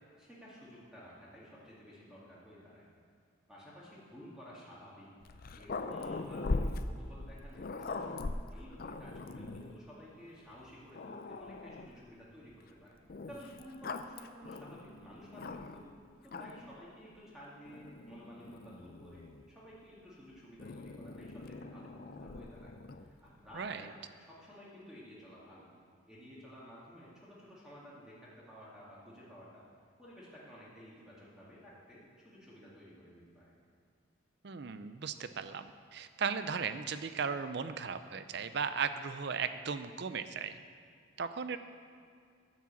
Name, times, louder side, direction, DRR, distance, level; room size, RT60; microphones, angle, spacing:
voice 1, 0.0-2.8 3.5-5.1 5.6-8.2 8.5-13.0 13.2-15.9 16.2-22.7 23.2-23.9 24.2-25.7 26.1-29.6 30.0-33.5, equal, 5° right, -8 dB, 2.1 m, -53 dB
Growling, 5.2-9.8 10.5-10.6 10.9-12.0 13.1-15.9 16.2-16.8 17.7-19.5 20.6-23.1, left 3 dB, 45° left, 0.4 m, -41 dB
voice 2, 23.5-23.9 34.4-40.6 41.2-41.6, right 6 dB, 55° right, 11 dB, 0.5 m, -36 dB
9.7 x 7.5 x 7.3 m, 2.1 s
head